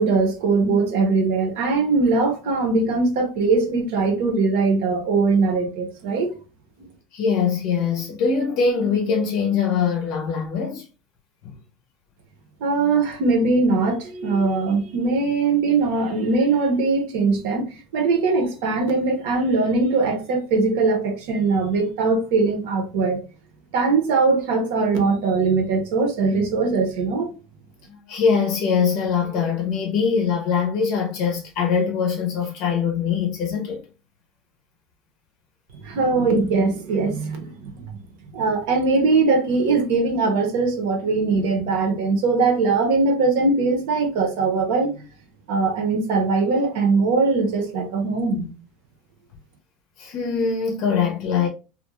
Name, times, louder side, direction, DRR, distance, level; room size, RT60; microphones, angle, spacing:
voice 1, 0.0-6.3 12.6-17.7 17.9-23.2 23.7-27.3 35.7-37.9 38.3-45.0 45.5-48.5, right 3 dB, 65° right, 0.7 m, -21 dB
voice 2, 7.1-10.8 27.9-33.8 50.0-51.5, left 6 dB, 45° left, 0.6 m, -22 dB
2.4 x 2.2 x 2.9 m
supercardioid pair, 165°, 0 cm